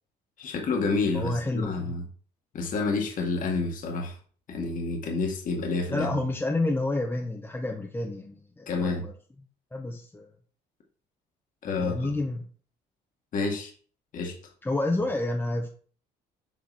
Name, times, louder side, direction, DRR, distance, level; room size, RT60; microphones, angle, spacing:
voice 1, 0.4-2.0 2.5-4.1 4.5-6.1 8.7-9.0 11.6-12.0 13.3-13.7 14.1-14.3, left 3 dB, 50° left, 1 dB, 2.0 m, -29 dB
voice 2, 1.1-1.9 5.9-9.1 9.7-10.3 11.8-12.5 14.6-15.7, left 2 dB, 10° left, 0 dB, 1.1 m, -29 dB
7.9 x 5.2 x 4.3 m, 0.44 s
cardioid pair, 110°, 17 cm